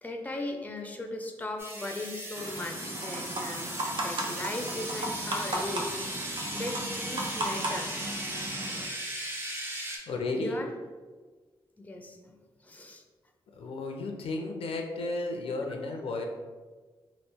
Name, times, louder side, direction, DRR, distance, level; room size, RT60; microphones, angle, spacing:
voice 1, 0.0-8.1 10.3-10.7 11.8-12.4 12.6-13.0, left 2 dB, 15° left, 3 dB, 0.5 m, -38 dB
sound 1, 1.6-10.0, right 1 dB, 25° right, 0.9 m, -37 dB
sound 2, 2.4-8.8, right 1 dB, 55° right, 0.7 m, -36 dB
voice 2, 10.1-10.6 13.5-16.2, left 2 dB, 75° left, 2 dB, 0.4 m, -33 dB
3.0 x 2.5 x 3.4 m, 1.4 s
cardioid pair, 55°, 10 cm